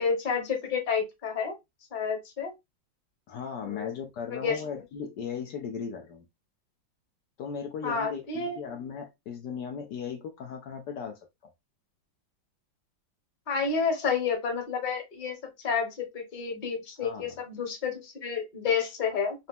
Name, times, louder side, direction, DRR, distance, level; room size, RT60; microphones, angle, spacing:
voice 1, 0.0-1.5 1.9-2.5 3.6-3.9 4.3-4.6 7.8-8.6 13.5-19.5, left 5 dB, 30° left, 1.0 m, -30 dB
voice 2, 3.3-6.2 7.4-11.2 17.0-17.3, left 6 dB, 70° left, 1.1 m, -37 dB
4.1 x 2.8 x 3.4 m
omnidirectional pair, 2.1 m